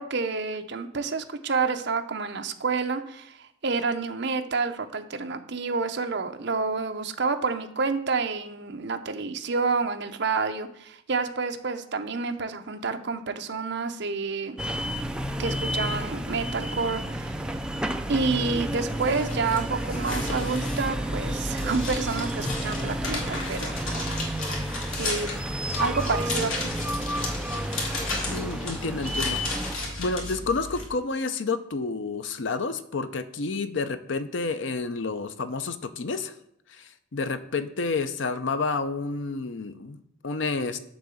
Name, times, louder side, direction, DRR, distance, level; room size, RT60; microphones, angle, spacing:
voice 1, 0.0-14.6 15.4-17.4 18.1-23.8 25.0-25.3 25.8-26.7, right 4 dB, 55° right, 7 dB, 0.7 m, -29 dB
sound 1, 14.6-29.8, equal, 5° right, 0.4 m, -31 dB
sound 2, 18.7-30.8, left 2 dB, 80° left, 2.2 m, -34 dB
voice 2, 28.3-36.3 36.8-40.8, left 4 dB, 60° left, 11 dB, 0.6 m, -30 dB
10.0 x 3.8 x 7.0 m, 0.76 s
head